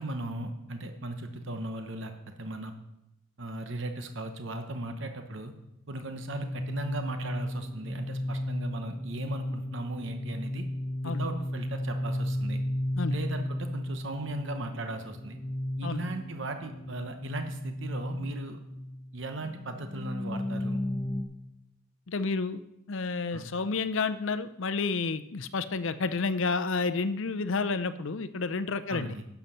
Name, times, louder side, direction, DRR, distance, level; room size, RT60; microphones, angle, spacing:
voice 1, 0.0-2.1 2.4-2.7 3.4-5.5 5.9-10.6 11.0-12.6 13.1-15.4 15.8-18.6 19.1-20.8 23.3-23.5 28.9-29.3, right 1 dB, 55° right, 6 dB, 0.9 m, -37 dB
sound 1, 6.0-21.2, left 1 dB, 20° left, 1.0 m, -34 dB
voice 2, 22.1-22.6 22.9-29.2, left 4 dB, 60° left, 11 dB, 0.6 m, -30 dB
11.5 x 7.0 x 5.6 m, 0.88 s
head